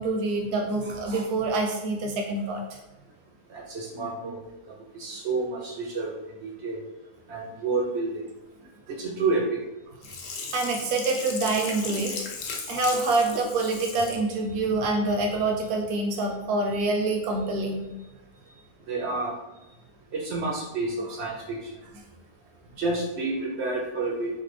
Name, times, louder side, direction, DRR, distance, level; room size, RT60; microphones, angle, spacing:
voice 1, 0.0-2.6 10.2-12.1 12.7-17.8, right 2 dB, 80° right, 1 dB, 1.2 m, -26 dB
voice 2, 3.5-4.4 4.9-6.1 6.4-6.8 7.3-8.1 9.0-9.4 18.9-19.3 20.1-21.7 22.8-24.3, right 3 dB, 65° right, -2 dB, 0.7 m, -29 dB
Sink (filling or washing), 10.0-14.2 14.7-14.8, left 4 dB, 70° left, 0.6 m, -36 dB
3.2 x 2.2 x 3.2 m, 0.99 s
omnidirectional pair, 1.6 m